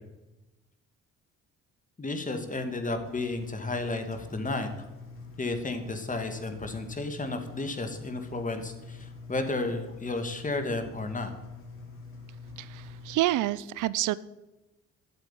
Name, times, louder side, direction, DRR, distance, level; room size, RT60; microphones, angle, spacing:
voice 1, 2.0-4.8 5.4-11.3, left 2 dB, 25° left, 6 dB, 2.3 m, -32 dB
Engine, 3.0-13.2, left 4 dB, 45° left, 4.2 m, -45 dB
voice 2, 12.6-14.1, right 15 dB, 85° right, 19 dB, 0.6 m, -28 dB
12.5 x 7.9 x 9.2 m, 1.0 s
cardioid pair, 90°, 30 cm